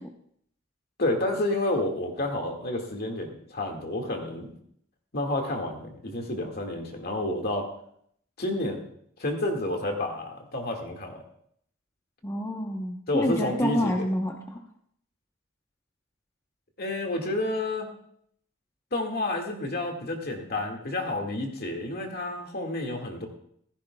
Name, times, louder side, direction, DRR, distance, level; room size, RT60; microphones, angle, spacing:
voice 1, 1.0-4.6 5.1-7.7 8.4-8.8 9.2-11.2 13.1-14.1 16.8-17.9 18.9-23.3, left 1 dB, 50° left, 2 dB, 2.0 m, -30 dB
voice 2, 12.2-14.6, left 1 dB, 15° left, 1 dB, 0.9 m, -28 dB
15.5 x 15.0 x 2.3 m, 0.66 s
head